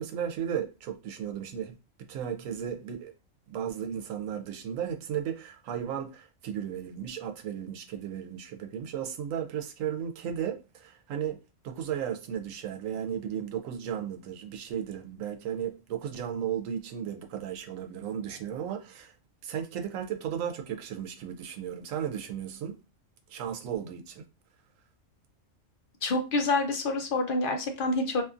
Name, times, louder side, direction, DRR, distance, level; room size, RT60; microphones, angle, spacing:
voice 1, 0.0-1.8 2.1-3.1 3.5-11.4 11.6-19.1 19.4-22.8 23.3-24.2, right 9 dB, 90° right, 1.0 m, -35 dB
voice 2, 26.0-28.2, left 2 dB, 60° left, 0.6 m, -27 dB
2.6 x 2.5 x 2.4 m
omnidirectional pair, 1.3 m